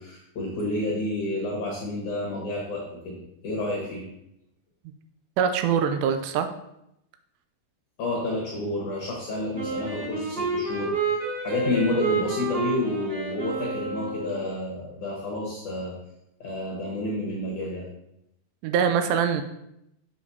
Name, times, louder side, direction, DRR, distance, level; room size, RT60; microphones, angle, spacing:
voice 1, 0.0-3.2 3.4-4.0 8.0-16.0 16.4-17.9, left 2 dB, 70° left, -3 dB, 1.9 m, -30 dB
voice 2, 5.4-6.5 18.6-19.4, right 7 dB, 85° right, 8 dB, 2.6 m, -23 dB
Wind instrument woodwind instrument, 9.5-14.6, right 3 dB, 35° right, 2.2 m, -29 dB
7.7 x 6.2 x 2.7 m, 0.82 s
omnidirectional pair, 5.0 m